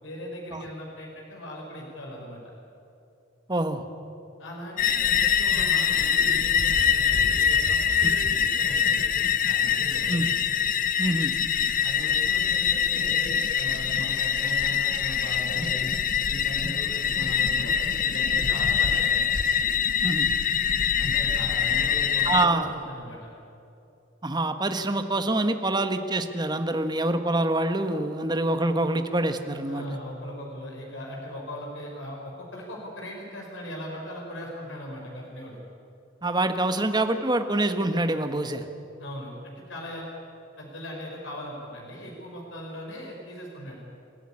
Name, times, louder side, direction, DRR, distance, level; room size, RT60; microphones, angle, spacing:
voice 1, 0.0-2.4 4.4-10.2 11.8-15.9 16.2-19.1 21.0-23.3 29.7-35.6 39.0-40.0 40.6-43.8, equal, 90° left, -1 dB, 4.7 m, -39 dB
voice 2, 3.5-3.8 10.1-10.3 11.0-11.3 16.6-16.8 20.0-20.3 22.3-22.7 24.2-29.8 36.2-38.7, right 2 dB, 20° right, 8 dB, 1.3 m, -25 dB
sound 1, 4.8-22.5, left 8 dB, 45° left, 0.8 m, -24 dB
27.5 x 14.0 x 9.9 m, 2.8 s
head